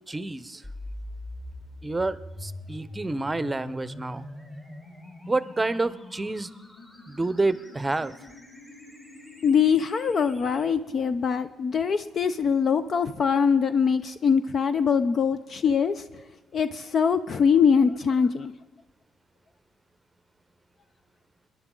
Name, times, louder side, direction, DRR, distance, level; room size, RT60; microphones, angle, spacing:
voice 1, 0.1-0.6 1.8-4.3 5.3-6.5 7.1-8.1, right 2 dB, 20° right, 15 dB, 0.7 m, -28 dB
sound 1, 0.6-10.6, left 1 dB, 30° left, 4.3 m, -43 dB
voice 2, 9.4-16.0 16.5-18.5, left 6 dB, 50° left, 11 dB, 0.5 m, -23 dB
21.0 x 10.5 x 3.8 m, 1.1 s
cardioid pair, 90°, 0 cm